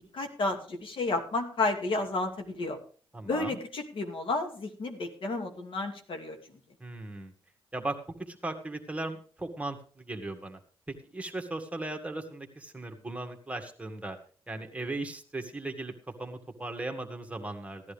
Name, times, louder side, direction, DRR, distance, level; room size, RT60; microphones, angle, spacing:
voice 1, 0.1-2.8 3.3-6.4, left 2 dB, 60° left, 4 dB, 2.5 m, -31 dB
voice 2, 3.1-3.6 6.8-7.3 7.7-10.6 10.9-14.2 14.5-15.9 16.2-17.8, right 2 dB, 15° right, 5 dB, 2.0 m, -37 dB
16.0 x 11.0 x 3.5 m, 0.42 s
cardioid pair, 80°, 10 cm